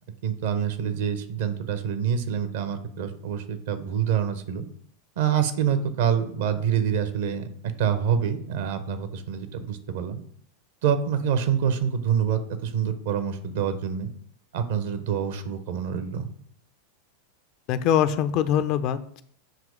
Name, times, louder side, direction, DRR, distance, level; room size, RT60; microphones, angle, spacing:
voice 1, 0.2-4.7 5.2-10.2 10.8-14.1 14.5-16.3, right 8 dB, 60° right, 10 dB, 0.7 m, -26 dB
voice 2, 17.7-19.2, left 9 dB, 45° left, 11 dB, 0.5 m, -23 dB
7.6 x 3.0 x 5.0 m, 0.62 s
figure-of-eight pair, 90°, 0 cm